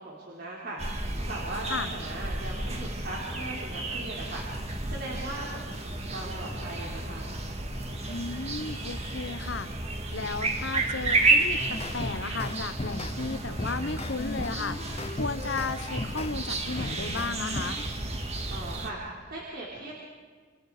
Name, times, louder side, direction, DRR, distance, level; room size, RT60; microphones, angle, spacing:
voice 1, 0.0-7.3 18.5-19.9, right 2 dB, 55° right, -4 dB, 4.2 m, -39 dB
sound 1, 0.8-18.9, right 2 dB, 35° right, 2.2 m, -32 dB
sound 2, 0.9-16.9, equal, 5° right, 1.5 m, -47 dB
voice 2, 8.0-9.7 10.1-17.8, left 4 dB, 65° left, 11 dB, 1.2 m, -34 dB
sound 3, 11.6-16.3 16.8-17.8, left 2 dB, 30° left, 0.9 m, -37 dB
29.0 x 27.5 x 5.0 m, 1.5 s
head